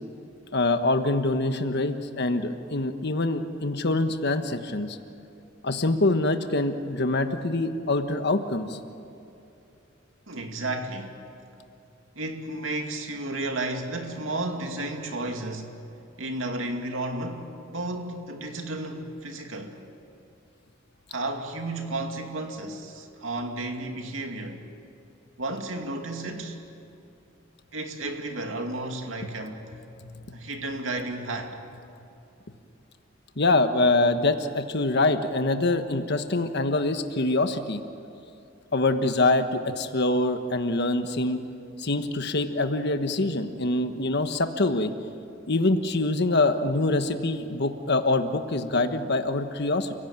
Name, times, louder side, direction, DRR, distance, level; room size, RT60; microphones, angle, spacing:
voice 1, 0.5-5.0 5.6-8.8 30.0-30.4 33.4-37.8 38.7-41.4 41.8-44.9 45.5-49.9, left 2 dB, 60° left, 8 dB, 1.4 m, -25 dB
voice 2, 10.3-11.2 12.2-15.8 16.2-19.8 21.1-24.6 25.4-26.6 27.7-29.7 30.3-31.6, right 2 dB, 85° right, 4 dB, 2.5 m, -33 dB
30.0 x 16.5 x 9.0 m, 2.7 s
head